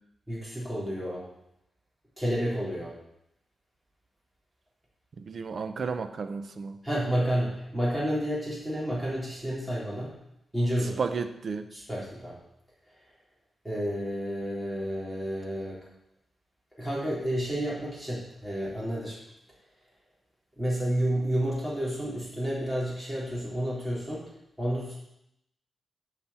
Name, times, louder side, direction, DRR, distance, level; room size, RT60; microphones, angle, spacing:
voice 1, 0.3-1.2 2.2-2.9 6.8-10.1 10.5-11.0 11.7-12.4 13.6-15.8 16.8-19.2 20.6-24.2 24.6-24.9, equal, 10° right, -6 dB, 3.9 m, -30 dB
voice 2, 5.2-6.8 11.0-11.7, right 5 dB, 50° right, 9 dB, 0.6 m, -32 dB
8.8 x 5.8 x 7.5 m, 0.80 s
wide cardioid pair, 130°, 0 cm